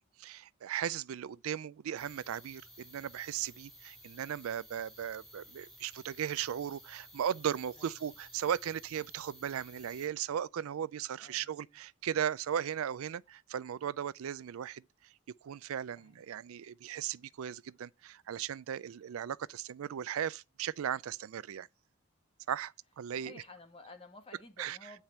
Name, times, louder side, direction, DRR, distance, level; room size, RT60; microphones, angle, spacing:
voice 1, 0.2-14.8 15.4-21.7 22.5-23.3 24.6-24.8, right 9 dB, 90° right, 0.4 m, -37 dB
sound 1, 2.0-10.1, equal, ahead, 2.8 m, -55 dB
voice 2, 7.8-8.1 11.2-11.8 15.9-16.2 23.2-25.0, left 2 dB, 25° left, 1.5 m, -53 dB
8.8 x 4.5 x 5.4 m
head